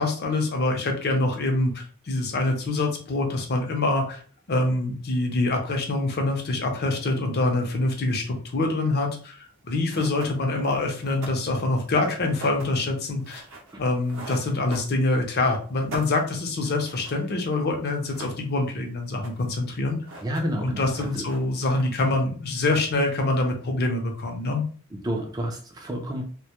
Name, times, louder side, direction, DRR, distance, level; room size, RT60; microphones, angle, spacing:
voice 1, 0.0-4.2 4.5-13.4 13.8-20.0 20.6-24.6, left 2 dB, 50° left, 2 dB, 0.5 m, -25 dB
sound 1, 9.5-9.6 9.9-15.4 15.7-17.5 17.8-18.8 19.0-19.6 19.9-20.7 20.9-22.1, right 2 dB, 65° right, 0.6 m, -42 dB
voice 2, 20.2-21.3 24.9-26.2, equal, 20° right, 2 dB, 0.3 m, -30 dB
2.1 x 2.0 x 2.8 m, 0.42 s
head